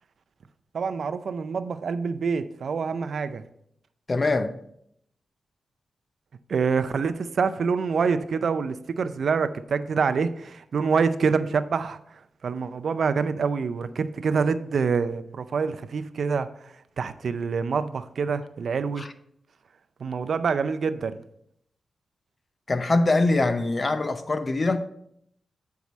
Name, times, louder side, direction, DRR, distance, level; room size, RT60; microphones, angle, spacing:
voice 1, 0.7-3.4 6.5-12.0 12.4-19.1 20.0-21.2, right 5 dB, 65° right, 0.4 m, -26 dB
voice 2, 4.1-4.6 19.0-19.1 22.7-24.9, left 2 dB, 40° left, 0.6 m, -23 dB
8.2 x 4.7 x 4.1 m
cardioid pair, 85°, 0 cm